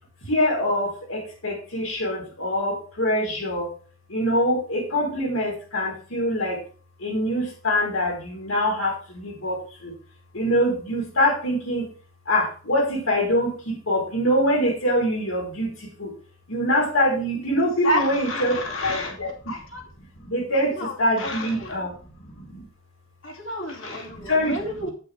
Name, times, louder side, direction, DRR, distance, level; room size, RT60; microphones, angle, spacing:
voice 1, 0.3-3.7 4.1-6.6 7.0-9.9 10.3-11.9 12.3-16.1 16.5-19.3 20.2-22.6 24.1-24.9, equal, 90° left, 0 dB, 4.3 m, -24 dB
voice 2, 17.8-19.2 19.5-19.8 20.8-21.8 23.2-24.9, left 1 dB, 70° left, 1 dB, 2.8 m, -30 dB
8.8 x 8.3 x 3.5 m, 0.41 s
head